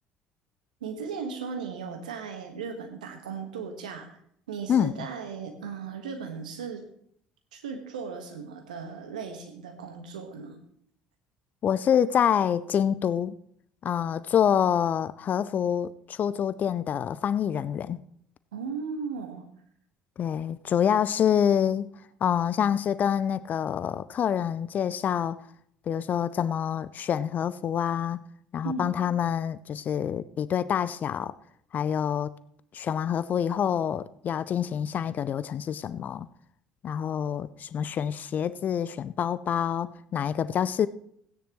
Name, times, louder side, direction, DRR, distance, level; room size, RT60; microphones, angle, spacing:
voice 1, 0.8-4.1 4.5-6.8 7.5-10.6 18.5-19.5 28.6-28.9, right 5 dB, 80° right, 1.6 m, -36 dB
voice 2, 11.6-13.4 13.8-18.0 20.2-21.9 22.2-25.4 25.9-28.2 28.5-31.3 31.7-32.3 32.7-36.3 36.8-40.9, left 8 dB, 45° left, 0.5 m, -26 dB
16.0 x 10.0 x 3.1 m
hypercardioid pair, 60°, 4 cm